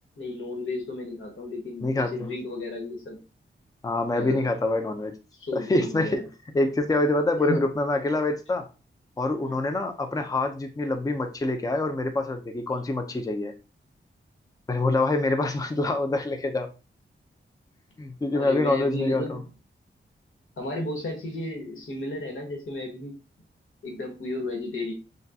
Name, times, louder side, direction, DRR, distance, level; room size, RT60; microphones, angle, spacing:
voice 1, 0.2-3.2 4.1-4.5 5.3-6.2 7.4-7.6 9.5-9.6 18.3-19.4 20.6-23.1 23.8-24.9, left 1 dB, 90° left, 1 dB, 1.5 m, -33 dB
voice 2, 3.8-5.1 5.5-6.2 6.5-8.7 9.2-13.5 14.7-16.7 18.0-19.4, left 2 dB, 20° left, 6 dB, 0.5 m, -25 dB
6.3 x 2.3 x 2.7 m, 0.32 s
wide cardioid pair, 115°, 20 cm